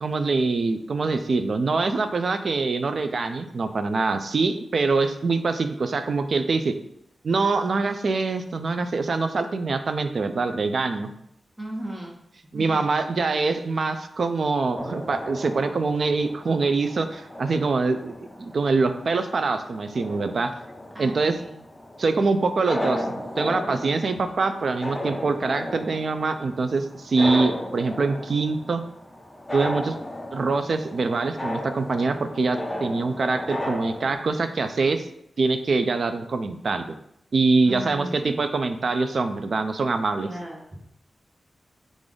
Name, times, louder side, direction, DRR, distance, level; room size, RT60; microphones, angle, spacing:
voice 1, 0.0-6.7 7.2-11.1 12.5-20.5 21.0-21.3 22.0-23.0 23.4-28.8 29.5-29.9 30.3-35.1 35.4-37.0 37.3-40.3, right 3 dB, 55° right, 8 dB, 0.3 m, -24 dB
voice 2, 11.6-12.1 12.5-12.8 20.9-21.6 37.6-38.4 40.2-40.6, right 1 dB, 15° right, -3 dB, 1.0 m, -36 dB
sound 1, 14.8-34.1, left 1 dB, 15° left, 0.6 m, -35 dB
5.0 x 2.5 x 3.7 m, 0.75 s
wide cardioid pair, 150°, 0 cm